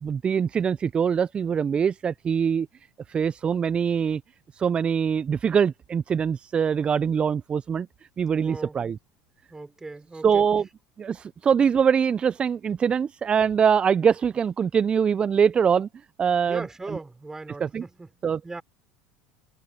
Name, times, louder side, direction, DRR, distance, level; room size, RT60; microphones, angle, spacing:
voice 1, 0.0-2.7 3.1-4.2 4.5-7.9 8.2-9.0 10.2-10.7 11.0-15.9 16.2-16.6 17.6-17.8 18.2-18.4, right 7 dB, 30° right, 0.5 m, -23 dB
voice 2, 8.4-8.8 9.5-10.4 16.5-18.1 18.4-18.6, right 3 dB, 15° right, 4.9 m, -38 dB
hypercardioid pair, 90°, 4 cm